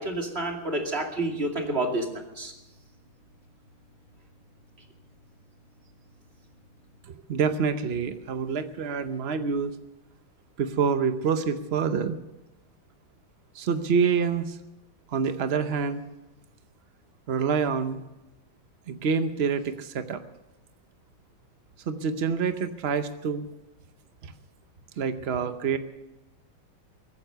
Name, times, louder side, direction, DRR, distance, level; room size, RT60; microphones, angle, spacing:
voice 1, 0.0-2.1 2.4-2.5, right 2 dB, 30° right, 2 dB, 2.5 m, -29 dB
voice 2, 7.1-9.7 10.6-12.2 13.5-14.6 15.1-16.0 17.3-18.0 18.9-20.2 21.9-23.5 24.2-24.3 25.0-25.8, right 6 dB, 70° right, 9 dB, 0.6 m, -27 dB
22.0 x 9.4 x 6.7 m, 1.0 s
omnidirectional pair, 2.3 m